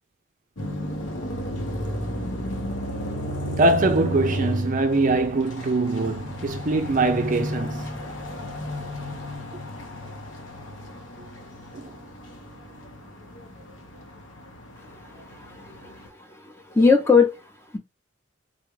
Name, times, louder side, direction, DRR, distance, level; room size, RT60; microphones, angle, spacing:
sound 1, 0.6-16.1, equal, 80° left, 1.1 m, -33 dB
voice 1, 3.5-7.9 11.7-11.9, right 2 dB, 40° right, 0.4 m, -23 dB
voice 2, 14.8-17.8, left 4 dB, 15° left, 0.8 m, -22 dB
3.9 x 2.4 x 3.1 m
head